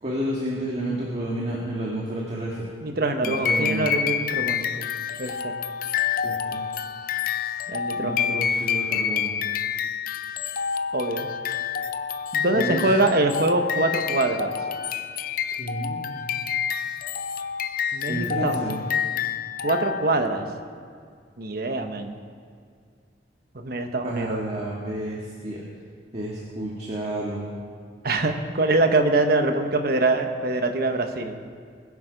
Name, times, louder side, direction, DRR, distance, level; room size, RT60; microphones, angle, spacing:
voice 1, 0.0-2.7 3.2-3.9 6.2-6.6 8.0-9.3 12.5-12.8 15.6-16.2 18.1-18.8 24.0-25.2 25.4-25.6 26.1-27.5, right 1 dB, 35° right, -4 dB, 1.8 m, -30 dB
voice 2, 2.8-4.9 5.2-5.6 7.7-8.4 10.9-11.3 12.3-14.5 17.9-18.8 19.6-20.5 21.4-22.1 23.5-24.4 28.0-31.3, right 2 dB, 55° right, 6 dB, 1.1 m, -24 dB
sound 1, 3.2-20.3, left 7 dB, 50° left, 0.5 m, -28 dB
20.5 x 8.6 x 5.2 m, 2.1 s
head